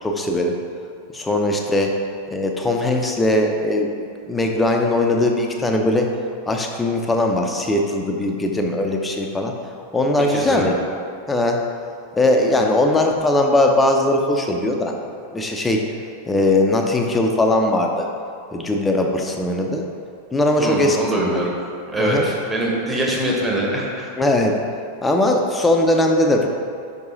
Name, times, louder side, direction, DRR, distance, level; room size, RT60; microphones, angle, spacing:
voice 1, 0.0-0.6 1.1-2.0 2.3-6.1 6.5-9.5 9.9-10.7 11.3-11.6 12.1-15.0 15.3-15.8 16.3-18.1 18.5-19.9 20.3-21.3 22.0-22.3 24.2-24.6 25.0-26.5, left 1 dB, 10° left, 2 dB, 0.6 m, -19 dB
voice 2, 10.3-10.8 20.6-21.5 21.9-24.1, right 1 dB, 10° right, -3 dB, 1.1 m, -23 dB
5.3 x 4.7 x 3.9 m, 2.3 s
figure-of-eight pair, 90°, 0 cm